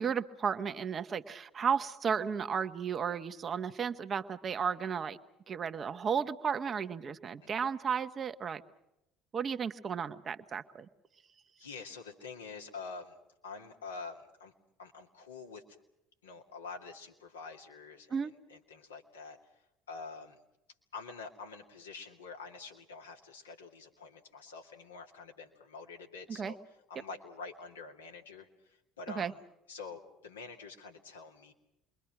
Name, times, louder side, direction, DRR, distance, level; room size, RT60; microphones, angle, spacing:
voice 1, 0.0-5.2 5.5-8.6 9.3-10.9 18.1-18.3 26.3-26.5 29.1-29.3, right 7 dB, 35° right, 9 dB, 1.3 m, -34 dB
voice 2, 11.6-13.1 13.4-14.5 14.8-15.6 16.2-19.4 19.9-20.4 20.9-26.6 26.9-29.4 29.7-31.5, left 4 dB, 80° left, 1 dB, 2.5 m, -47 dB
28.0 x 23.0 x 6.1 m, 0.85 s
figure-of-eight pair, 60°, 0 cm